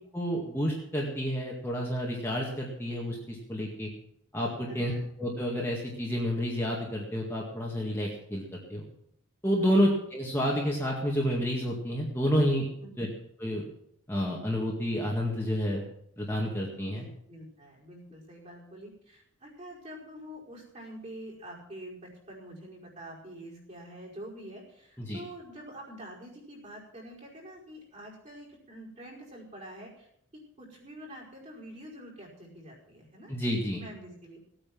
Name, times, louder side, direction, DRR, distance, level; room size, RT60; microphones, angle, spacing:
voice 1, 0.1-3.9 4.3-4.9 5.2-8.8 9.4-12.7 13.0-13.1 13.4-13.7 14.1-15.8 16.2-17.0 25.0-25.2 33.3-33.8, equal, 10° left, -3 dB, 1.9 m, -29 dB
voice 2, 4.7-5.0 9.6-9.8 12.8-13.0 16.9-33.3 33.8-34.4, right 1 dB, 35° right, -4 dB, 5.0 m, -46 dB
17.5 x 9.0 x 6.0 m, 0.70 s
head